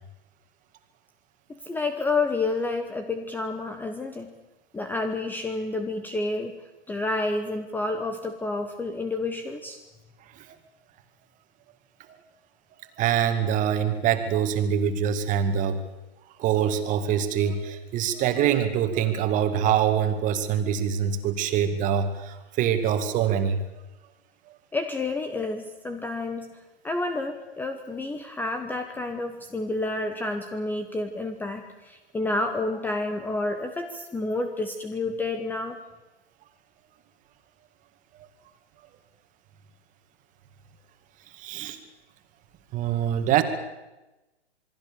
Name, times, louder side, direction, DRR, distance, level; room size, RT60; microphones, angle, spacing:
voice 1, 1.5-4.4 4.7-9.8 24.7-26.5 26.8-35.8, left 2 dB, 5° left, 8 dB, 1.0 m, -29 dB
voice 2, 12.8-15.8 16.4-23.6 41.3-41.8 42.7-43.4, right 9 dB, 25° right, 8 dB, 2.2 m, -24 dB
27.5 x 22.0 x 7.0 m, 1.0 s
hypercardioid pair, 135°, 34 cm